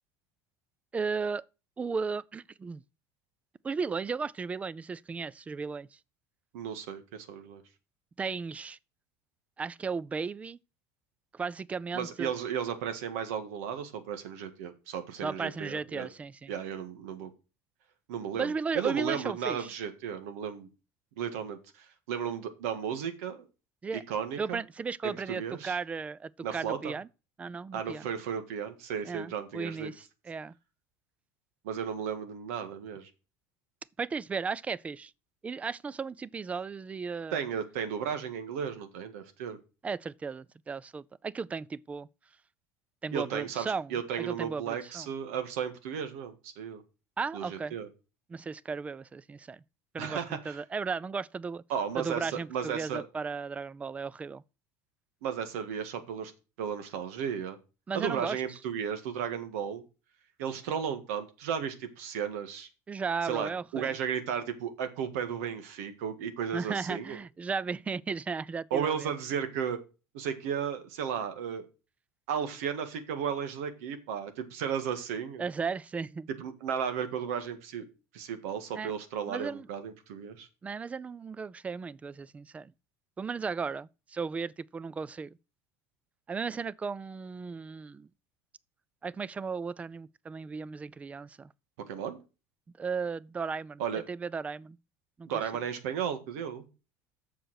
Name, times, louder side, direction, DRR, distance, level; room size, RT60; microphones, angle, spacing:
voice 1, 0.9-1.4 1.8-2.8 3.6-5.9 8.2-8.8 9.6-10.6 11.3-12.3 15.2-16.5 18.4-19.7 23.8-24.0 24.4-27.1 27.4-28.0 29.0-30.5 34.0-35.1 35.4-37.4 39.8-42.1 43.0-45.1 47.2-47.8 48.3-49.6 49.9-51.6 52.0-54.4 57.9-58.4 62.9-64.0 66.5-69.1 75.4-76.3 78.7-78.9 79.3-79.7 80.6-82.7 83.2-85.4 86.3-88.1 89.0-91.5 92.8-93.8 94.1-94.8 95.2-95.3, right 5 dB, 20° right, 0.4 m, -35 dB
voice 2, 6.5-7.6 11.9-16.1 16.5-17.3 18.1-20.7 21.2-23.5 23.9-24.6 25.0-25.8 26.4-26.9 27.7-29.9 31.6-33.1 37.3-39.6 43.1-46.8 47.3-47.9 50.0-50.6 51.7-53.0 55.2-56.3 56.6-57.6 57.9-59.8 60.4-62.7 63.2-67.2 68.7-69.8 70.1-71.7 72.3-75.5 76.4-77.8 78.1-80.5 91.9-92.2 93.8-94.0 95.3-96.7, right 8 dB, 90° right, 1.7 m, -34 dB
7.6 x 6.6 x 6.3 m
supercardioid pair, 125°, 7 cm